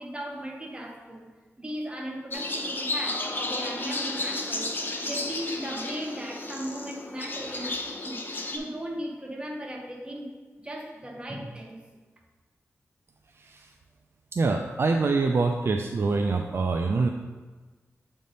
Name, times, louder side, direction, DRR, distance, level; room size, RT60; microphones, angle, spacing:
voice 1, 0.0-1.3 1.6-4.7 5.0-8.2 8.5-10.3 10.6-11.8, equal, 20° right, 0 dB, 1.1 m, -37 dB
sound 1, 2.3-8.6, left 2 dB, 40° left, 0.7 m, -32 dB
voice 2, 14.3-17.1, right 3 dB, 50° right, 3 dB, 0.4 m, -25 dB
7.5 x 3.5 x 4.0 m, 1.3 s
wide cardioid pair, 95°, 5 cm